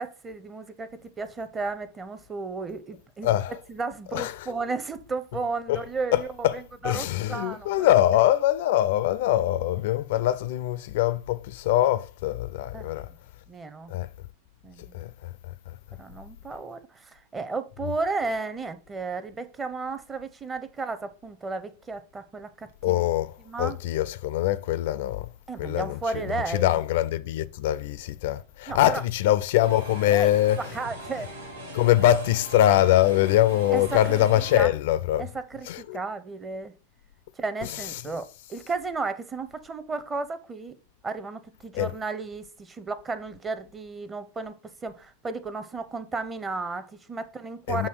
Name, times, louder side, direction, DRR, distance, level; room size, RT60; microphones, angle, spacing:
voice 1, 0.0-3.4 3.7-7.9 12.7-13.2 13.5-13.9 14.6-15.0 16.0-23.0 23.4-23.8 25.5-26.8 28.7-29.0 30.1-31.3 33.7-34.2 34.5-34.7 35.2-36.7 37.4-40.8 41.0-47.9, right 3 dB, 20° right, 0.7 m, -34 dB
voice 2, 3.2-3.5 4.1-4.3 5.7-5.8 6.1-6.6 6.8-13.1 13.9-14.1 14.9-15.1 22.8-25.3 25.6-30.6 31.7-35.2 35.7-36.0 41.7-41.9 47.7-47.9, left 13 dB, 50° left, 0.4 m, -23 dB
sound 1, 29.6-34.6, equal, 70° right, 1.7 m, -40 dB
7.8 x 2.8 x 4.7 m
figure-of-eight pair, 90°, 0 cm